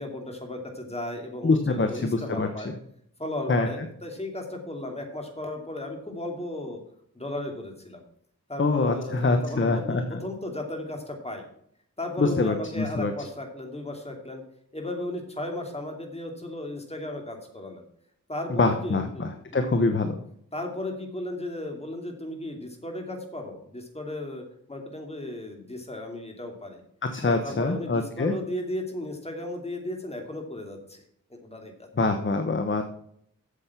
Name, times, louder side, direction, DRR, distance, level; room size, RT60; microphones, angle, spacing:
voice 1, 0.0-2.7 3.2-6.8 7.1-8.0 8.5-11.5 12.0-14.4 14.7-17.8 18.3-19.9 20.5-24.4 24.7-26.8 27.3-31.0 31.3-31.9, left 1 dB, 20° left, 2 dB, 2.8 m, -35 dB
voice 2, 1.4-2.7 3.5-3.7 8.6-10.2 12.2-13.1 18.5-20.2 27.0-28.3 32.0-32.8, left 3 dB, 35° left, 7 dB, 1.1 m, -25 dB
8.3 x 7.5 x 5.9 m, 0.68 s
cardioid pair, 60°, 33 cm